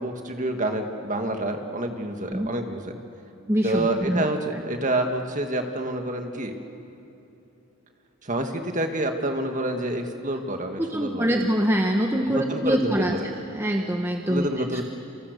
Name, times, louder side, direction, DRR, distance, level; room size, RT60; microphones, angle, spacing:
voice 1, 0.0-2.9 3.6-6.5 8.2-11.4 12.3-13.3 14.3-14.8, right 1 dB, 35° right, 4 dB, 1.9 m, -28 dB
voice 2, 3.5-4.2 4.5-4.6 10.8-13.1 13.5-14.5 14.7-14.8, equal, 10° right, 2 dB, 1.1 m, -24 dB
27.5 x 27.5 x 6.8 m, 2.9 s
head